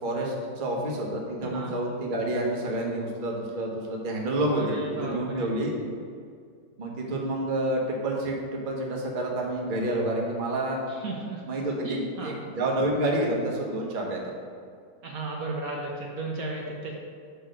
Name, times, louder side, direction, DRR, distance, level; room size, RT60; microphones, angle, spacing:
voice 1, 0.0-5.7 6.8-10.8 11.5-14.2, right 1 dB, 35° right, -1 dB, 0.9 m, -29 dB
voice 2, 1.4-1.7 4.3-5.5 10.9-11.4 11.8-12.3 15.0-16.9, right 2 dB, 60° right, -1 dB, 1.1 m, -34 dB
5.1 x 4.7 x 6.3 m, 2.2 s
omnidirectional pair, 1.8 m